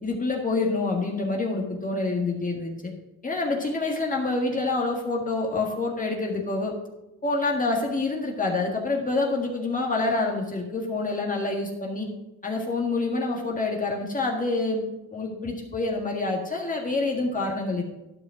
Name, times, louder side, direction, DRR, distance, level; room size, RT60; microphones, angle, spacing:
voice 1, 0.0-2.9 3.2-6.7 7.2-12.1 12.4-14.8 15.1-17.8, left 3 dB, 25° left, 0 dB, 1.7 m, -27 dB
11.5 x 5.1 x 5.9 m, 0.99 s
cardioid pair, 90°, 30 cm